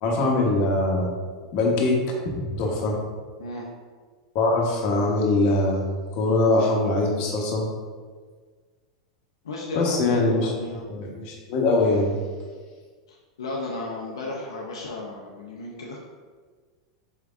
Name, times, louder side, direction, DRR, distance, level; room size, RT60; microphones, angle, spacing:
voice 1, 0.0-1.1 1.5-2.0 2.3-3.0 4.3-5.8 6.1-7.7 9.7-10.5 10.9-12.1, left 2 dB, 55° left, -1 dB, 1.1 m, -22 dB
voice 2, 9.4-10.9 13.1-16.0, left 2 dB, 85° left, -3 dB, 0.6 m, -34 dB
5.4 x 3.4 x 2.5 m, 1.5 s
hypercardioid pair, 105°, 2 cm